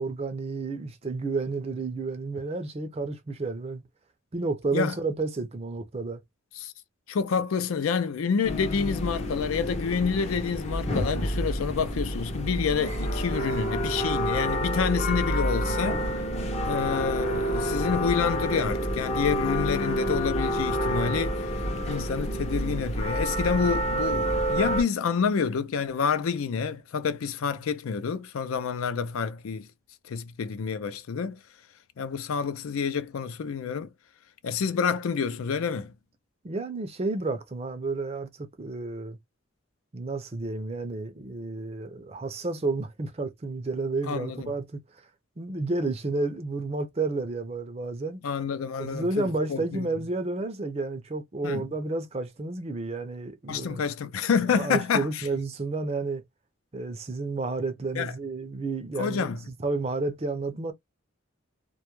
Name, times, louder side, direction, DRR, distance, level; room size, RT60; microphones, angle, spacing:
voice 1, 0.0-3.8 4.3-6.2 36.4-39.2 39.9-45.0 45.4-48.2 48.8-53.8 54.5-56.2 56.7-60.7, right 3 dB, 30° right, 0.4 m, -31 dB
voice 2, 7.1-16.0 16.7-21.4 21.9-29.7 30.0-31.4 32.0-33.9 34.4-35.9 44.0-44.5 48.2-49.9 51.4-51.6 53.5-55.3 58.0-58.1 59.0-59.4, left 6 dB, 85° left, 0.4 m, -28 dB
sound 1, 8.4-24.8, equal, 30° left, 0.5 m, -28 dB
2.2 x 2.1 x 2.9 m
head